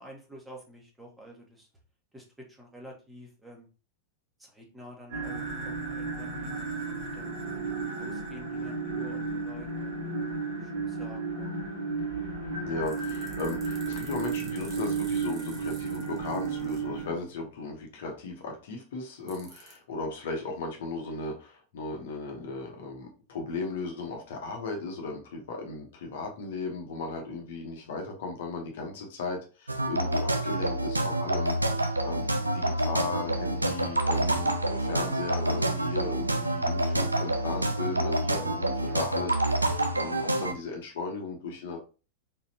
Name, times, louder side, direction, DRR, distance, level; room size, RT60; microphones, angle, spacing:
voice 1, 0.0-1.7 2.1-3.7 4.4-7.4 7.9-11.5 38.9-39.1, equal, 10° right, 0 dB, 1.4 m, -49 dB
sound 1, 5.1-17.1, right 4 dB, 55° right, 2.3 m, -33 dB
voice 2, 12.6-41.8, left 3 dB, 55° left, 2 dB, 1.0 m, -36 dB
sound 2, 12.8-16.8 19.3-19.8, right 4 dB, 30° right, 1.4 m, -50 dB
sound 3, 29.7-40.5, right 1 dB, 80° right, 0.5 m, -27 dB
4.1 x 3.9 x 2.8 m, 0.34 s
figure-of-eight pair, 90°, 0 cm